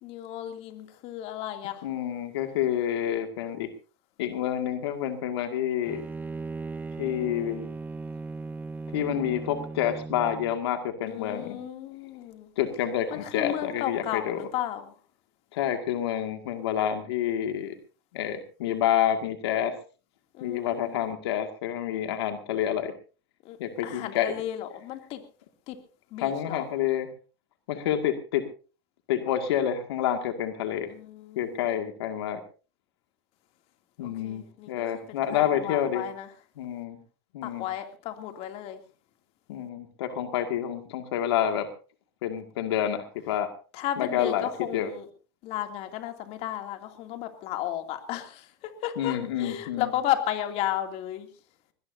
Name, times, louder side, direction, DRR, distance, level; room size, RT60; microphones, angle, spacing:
voice 1, 0.0-1.8 11.1-12.5 13.1-14.9 20.3-21.0 23.4-23.6 23.8-25.2 25.7-25.8 26.1-26.6 30.9-31.6 34.0-34.8 35.3-36.3 37.4-38.8 43.7-45.1 45.4-51.3, left 12 dB, 50° left, 6 dB, 2.6 m, -34 dB
voice 2, 1.8-3.7 4.2-6.0 7.0-7.7 8.9-11.6 12.6-14.4 15.5-17.8 18.1-19.8 20.4-22.9 23.6-24.3 26.2-27.1 27.7-28.5 29.1-30.9 31.4-32.4 34.0-36.0 36.6-37.0 37.3-37.7 39.5-41.7 42.2-43.5 44.0-44.9 49.0-49.9, left 10 dB, 80° left, 6 dB, 2.1 m, -28 dB
Bowed string instrument, 5.9-10.6, right 3 dB, 10° right, 0.7 m, -37 dB
22.0 x 19.0 x 2.7 m, 0.37 s
supercardioid pair, 125°, 13 cm